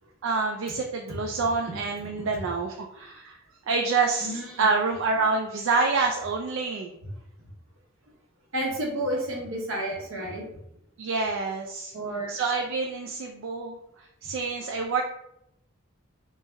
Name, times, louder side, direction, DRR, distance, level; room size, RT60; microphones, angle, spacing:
voice 1, 0.2-3.4 3.7-6.9 11.0-11.9 12.3-13.8 14.2-15.0, right 4 dB, 65° right, 2 dB, 0.3 m, -27 dB
voice 2, 4.2-4.7 8.5-10.4 11.9-12.3, right 1 dB, 85° right, -2 dB, 1.0 m, -31 dB
3.2 x 2.1 x 3.3 m, 0.78 s
head